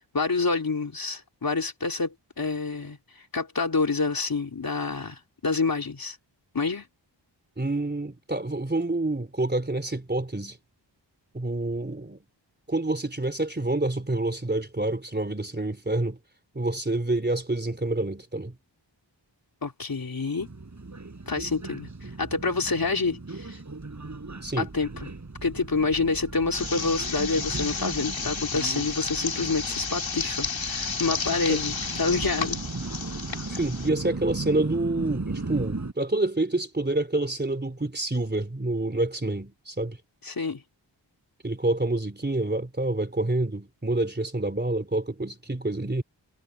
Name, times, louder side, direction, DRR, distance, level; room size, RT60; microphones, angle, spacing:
voice 1, 0.1-3.0 3.3-6.2 6.5-6.9 19.6-20.5 21.3-23.6 24.6-25.1 25.4-32.6 40.2-40.6, left 4 dB, 50° left, 3.3 m, -27 dB
voice 2, 7.6-10.6 11.3-12.2 12.7-16.2 16.5-18.5 24.4-24.7 31.5-31.6 33.5-40.0 41.4-46.0, right 2 dB, 20° right, 3.4 m, -27 dB
sound 1, 20.4-35.9, right 3 dB, 40° right, 6.6 m, -37 dB
sound 2, 26.5-33.9, left 5 dB, 80° left, 3.6 m, -32 dB
wide cardioid pair, 100°, 45 cm